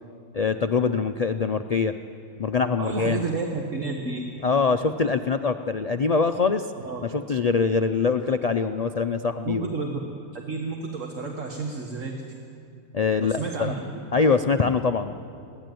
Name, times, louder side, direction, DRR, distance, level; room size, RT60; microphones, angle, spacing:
voice 1, 0.3-2.0 2.4-3.3 4.4-6.7 7.0-9.7 12.9-13.7 14.1-15.2, left 5 dB, 70° left, 8 dB, 0.3 m, -23 dB
voice 2, 2.8-4.2 6.8-7.0 9.4-10.0 10.3-12.1 13.2-14.0, right 4 dB, 55° right, 1 dB, 2.0 m, -31 dB
23.0 x 17.0 x 9.3 m, 2.5 s
omnidirectional pair, 1.6 m